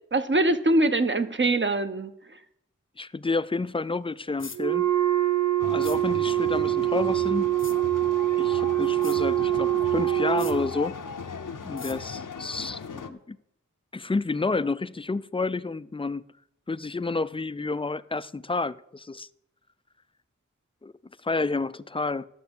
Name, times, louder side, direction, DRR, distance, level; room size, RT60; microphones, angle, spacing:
voice 1, 0.1-2.1, right 2 dB, 40° right, 0.8 m, -23 dB
voice 2, 3.0-4.9 5.6-7.5 8.4-11.0 11.6-13.4 13.9-16.3 16.7-19.3 20.8-20.9 21.2-22.3, left 3 dB, 20° left, 0.3 m, -30 dB
sound 1, 4.4-4.6 5.8-6.0 7.6-7.8 9.0-9.2 10.4-10.6 11.8-12.0, left 4 dB, 40° left, 0.7 m, -41 dB
Wind instrument woodwind instrument, 4.5-10.7, right 14 dB, 75° right, 0.7 m, -24 dB
sound 2, 5.6-13.1, left 5 dB, 85° left, 0.7 m, -37 dB
10.5 x 7.0 x 7.0 m
wide cardioid pair, 55°, 31 cm